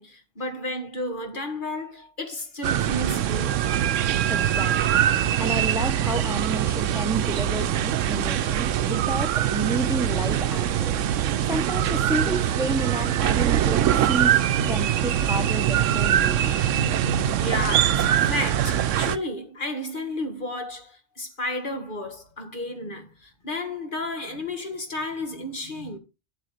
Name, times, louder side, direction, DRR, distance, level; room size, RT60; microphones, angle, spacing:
voice 1, 0.0-3.7 17.4-26.0, left 1 dB, 45° left, 1.9 m, -32 dB
sound 1, 2.6-19.2, right 10 dB, 90° right, 1.0 m, -23 dB
voice 2, 4.3-5.1 5.4-11.0 11.4-16.6, right 1 dB, 5° right, 0.8 m, -31 dB
8.3 x 7.9 x 4.1 m
omnidirectional pair, 1.2 m